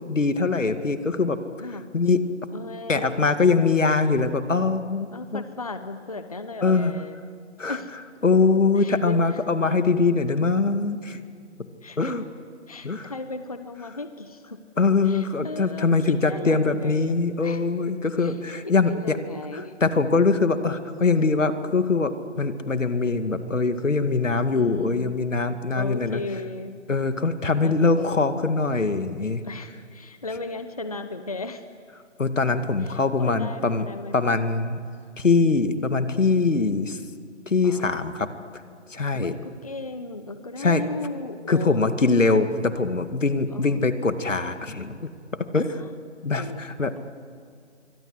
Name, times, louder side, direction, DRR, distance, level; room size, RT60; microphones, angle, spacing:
voice 1, 0.1-1.4 1.9-2.3 2.9-5.4 6.6-6.9 7.6-7.8 8.2-11.2 12.0-12.3 12.8-13.1 14.8-19.2 19.5-26.2 26.9-29.4 32.2-33.9 34.1-34.8 35.2-37.0 37.5-38.3 38.9-39.3 40.6-40.8 41.5-45.0 45.5-45.8 46.2-47.0, left 4 dB, 85° left, 9 dB, 2.3 m, -22 dB
voice 2, 2.5-3.2 5.1-7.2 7.7-7.9 8.8-9.4 11.8-12.1 12.7-14.6 15.0-17.6 18.2-18.4 18.6-19.7 24.5-25.2 25.8-26.8 27.6-28.4 29.4-31.6 32.8-34.1 37.6-37.9 39.1-41.9 43.5-43.8 45.6-45.9 46.3-46.6, left 2 dB, 30° left, 10 dB, 0.9 m, -36 dB
27.0 x 24.0 x 8.1 m, 2.2 s
figure-of-eight pair, 175°, 37 cm